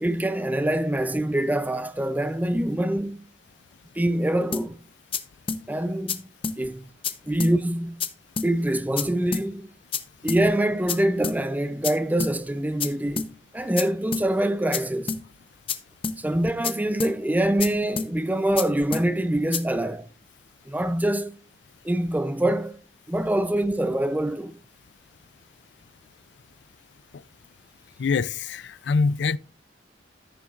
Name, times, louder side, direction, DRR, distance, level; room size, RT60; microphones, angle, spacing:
voice 1, 0.0-3.2 4.0-4.8 5.7-6.2 6.6-6.8 7.3-8.0 8.4-9.7 10.2-13.3 13.5-15.1 16.2-20.0 20.7-21.4 21.8-22.8 23.1-24.5, right 1 dB, 10° right, 0.6 m, -25 dB
sound 1, 4.5-4.7 5.1-5.2 5.5-5.6 6.1-6.2 6.4-6.6 7.0-7.1 7.4-7.5 8.0-8.1 8.4-8.5 9.0-9.1 9.3-9.5 9.9-10.0 10.3-10.4 10.9-11.0 11.2-11.4 11.8-11.9 12.2-12.3 12.8-12.9 13.2-13.3 13.8-13.9 14.1-14.3 14.7-14.8 15.1-15.2 15.7-15.8 16.0-16.2 16.6-16.7 17.0-17.1 17.6-17.7 18.0-18.1 18.6-18.7 18.9-19.1 19.5-19.6, left 5 dB, 30° left, 0.8 m, -28 dB
voice 2, 28.0-29.4, left 4 dB, 85° left, 0.4 m, -24 dB
13.5 x 7.5 x 2.5 m
head